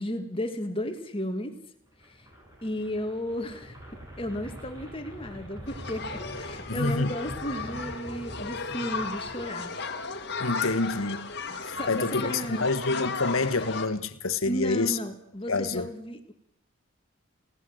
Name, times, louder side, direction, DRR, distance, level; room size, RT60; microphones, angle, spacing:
voice 1, 0.0-1.6 2.0-2.3 2.6-3.8 4.2-9.7 11.8-12.7 14.5-16.3, equal, 25° left, 2.4 m, -34 dB
sound 1, 1.9-9.9, equal, 15° right, 7.0 m, -44 dB
sound 2, 5.7-13.9, left 4 dB, 55° left, 2.2 m, -35 dB
voice 2, 6.7-7.2 10.4-11.3 11.6-15.0 15.5-15.9, left 3 dB, 85° left, 1.5 m, -27 dB
30.0 x 17.0 x 7.9 m
head